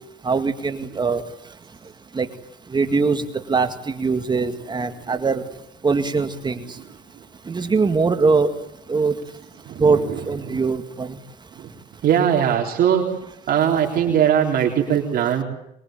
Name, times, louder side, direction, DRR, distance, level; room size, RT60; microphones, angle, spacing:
voice 1, 0.2-1.2 2.1-2.3 2.7-5.4 5.8-6.6 7.5-8.5 8.9-9.1 9.8-10.0 10.3-11.2, right 4 dB, 25° right, 8 dB, 2.0 m, -21 dB
voice 2, 9.6-10.2 11.6-11.7 12.0-13.0 13.5-15.4, right 9 dB, 60° right, 0 dB, 3.9 m, -20 dB
23.5 x 23.0 x 9.2 m, 0.78 s
cardioid pair, 110°, 17 cm